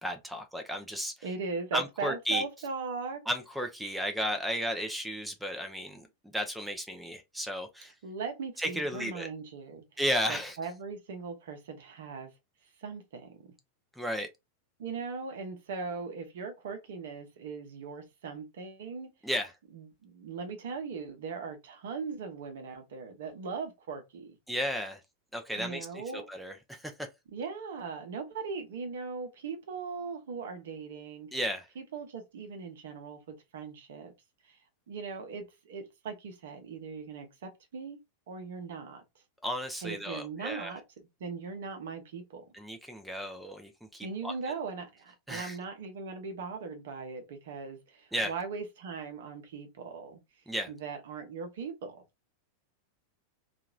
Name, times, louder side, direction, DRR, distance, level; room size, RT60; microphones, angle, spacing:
voice 1, 0.0-1.1 1.7-2.4 3.3-6.1 6.3-7.9 8.6-9.3 10.0-10.6 14.0-14.3 19.2-19.5 24.5-25.0 25.3-27.1 31.3-31.7 39.4-40.7 42.5-44.5 45.3-45.6 48.1-48.3 50.5-50.7, equal, ahead, 0.5 m, -34 dB
voice 2, 1.2-3.2 8.0-9.8 10.3-12.3 12.8-13.5 14.8-19.1 19.7-24.4 25.6-26.3 27.3-31.3 31.8-34.1 34.4-34.6 34.9-38.0 38.3-39.0 39.8-40.8 41.2-42.4 44.0-50.2 50.7-52.0, right 5 dB, 60° right, 0.8 m, -39 dB
2.8 x 2.5 x 2.3 m
figure-of-eight pair, 90°, 0 cm